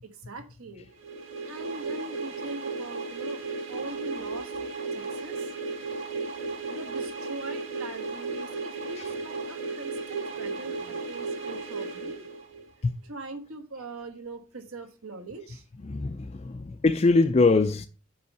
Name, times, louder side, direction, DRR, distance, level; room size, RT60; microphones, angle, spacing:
voice 1, 0.0-0.9 1.4-4.5 4.9-5.5 6.6-12.2 13.0-15.6, right 2 dB, 80° right, 1.4 m, -41 dB
sound 1, 1.0-12.8, right 4 dB, 60° right, 2.3 m, -35 dB
voice 2, 15.8-17.9, left 3 dB, 30° left, 0.4 m, -23 dB
5.5 x 5.4 x 6.7 m
head